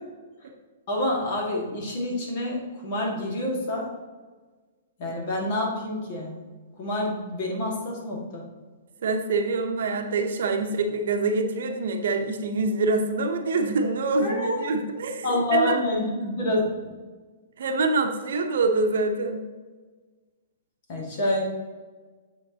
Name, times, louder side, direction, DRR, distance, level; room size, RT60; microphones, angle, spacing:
voice 1, 0.9-3.9 5.0-6.4 6.8-8.4 14.2-14.7 15.2-16.9 20.9-21.4, left 1 dB, 35° left, -2 dB, 1.8 m, -27 dB
voice 2, 9.0-15.2 15.5-15.8 17.6-19.4, right 3 dB, 65° right, 5 dB, 0.8 m, -25 dB
7.1 x 6.4 x 2.8 m, 1.4 s
hypercardioid pair, 175°, 0 cm